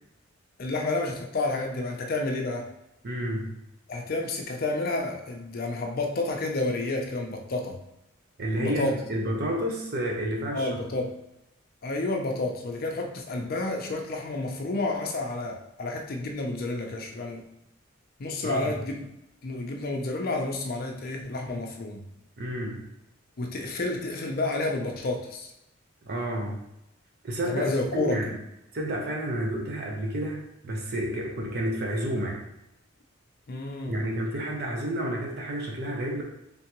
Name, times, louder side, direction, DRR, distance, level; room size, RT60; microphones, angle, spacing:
voice 1, 0.6-2.7 3.9-7.8 8.5-8.9 10.5-11.1 11.8-17.4 18.2-19.0 19.4-22.0 23.4-25.5 27.5-28.4 33.5-34.0, left 2 dB, 50° left, 2 dB, 0.5 m, -30 dB
voice 2, 3.0-3.5 8.4-10.8 18.4-18.7 22.4-22.8 26.1-26.6 27.2-27.7 27.9-28.3 28.7-32.4 33.9-36.2, right 1 dB, 55° right, 0 dB, 0.6 m, -30 dB
3.5 x 3.4 x 3.0 m, 0.86 s
head